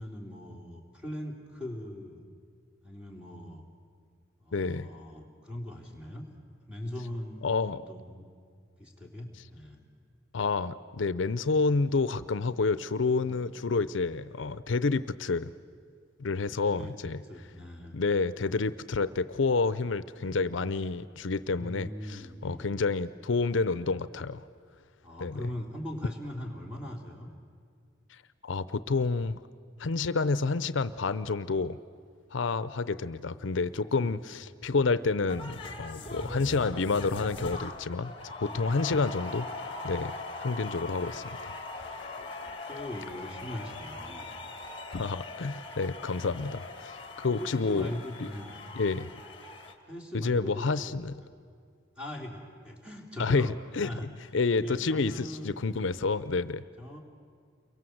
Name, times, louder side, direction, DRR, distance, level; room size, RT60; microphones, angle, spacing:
voice 1, 0.0-2.3 2.8-3.6 4.4-6.3 6.7-8.3 8.8-9.8 16.6-16.9 17.2-17.9 21.6-22.7 25.0-27.3 32.6-32.8 33.8-34.2 35.9-36.2 38.5-38.8 42.2-44.3 47.3-48.6 49.9-50.9 51.2-51.3 51.9-53.5 53.8-54.1 54.6-55.6 56.8-57.0, left 1 dB, 5° right, -1 dB, 3.2 m, -41 dB
voice 2, 4.5-4.9 7.4-7.8 10.3-15.5 16.2-17.2 17.9-24.4 25.2-25.5 28.1-29.4 29.8-31.8 32.3-42.1 44.9-47.9 48.2-48.3 48.8-49.1 50.1-51.1 53.2-56.6, left 4 dB, 75° left, 14 dB, 0.6 m, -29 dB
sound 1, 35.3-49.7, left 2 dB, 25° left, 1.8 m, -41 dB
30.0 x 23.0 x 7.9 m, 2.1 s
head